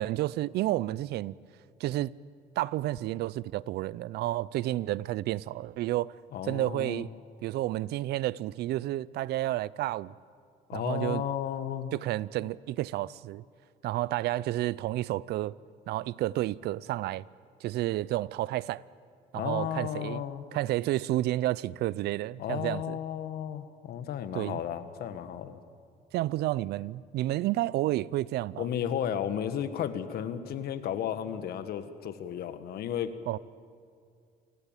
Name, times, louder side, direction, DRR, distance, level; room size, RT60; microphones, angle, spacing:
voice 1, 0.0-1.3 1.8-2.1 2.6-6.1 6.4-7.1 7.4-10.1 10.7-11.2 11.9-13.4 13.8-15.5 15.9-17.2 17.6-18.8 19.3-20.2 20.5-23.0 24.3-24.6 26.1-28.7 33.3-33.4, right 15 dB, 75° right, 0.6 m, -30 dB
voice 2, 6.3-7.0 10.7-11.9 19.3-20.5 22.4-25.6 28.6-33.1, left 9 dB, 65° left, 1.6 m, -33 dB
28.0 x 18.0 x 9.0 m
cardioid pair, 110°, 17 cm